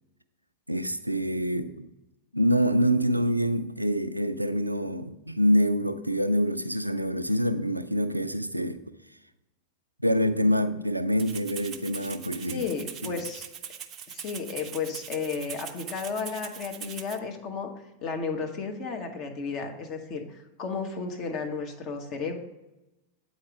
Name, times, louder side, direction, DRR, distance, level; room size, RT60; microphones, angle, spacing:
voice 1, 0.7-1.9 2.3-8.8 10.0-12.7 13.0-13.2, equal, 90° right, 0.4 m, -26 dB
Rattle (instrument), 11.2-17.2, right 8 dB, 30° right, 0.5 m, -41 dB
voice 2, 12.5-13.5 14.1-17.7 18.0-22.4, left 5 dB, 35° left, 1.1 m, -33 dB
8.5 x 4.1 x 4.7 m
figure-of-eight pair, 90°, 0 cm